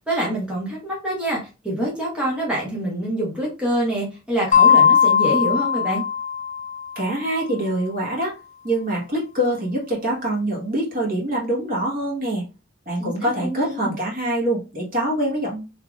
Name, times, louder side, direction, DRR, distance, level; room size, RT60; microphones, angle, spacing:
voice 1, 0.1-6.0 13.0-14.0, right 1 dB, 5° right, -4 dB, 1.0 m, -26 dB
sound 1, 4.5-7.0, left 7 dB, 35° left, 0.4 m, -18 dB
voice 2, 6.9-8.3 8.6-12.4 12.9-15.6, right 1 dB, 45° right, -3 dB, 1.3 m, -24 dB
3.4 x 2.8 x 2.3 m, 0.29 s
head